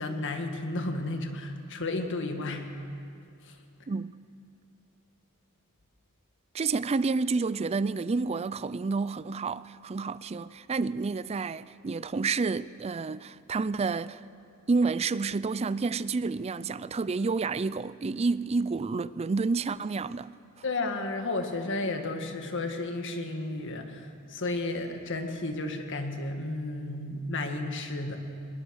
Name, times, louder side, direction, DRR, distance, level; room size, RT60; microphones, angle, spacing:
voice 1, 0.0-2.7 3.4-3.6 20.6-28.2, left 2 dB, 55° left, 1.8 m, -33 dB
voice 2, 6.5-14.2 14.7-20.3, right 4 dB, 30° right, 0.4 m, -29 dB
21.5 x 20.5 x 6.4 m
head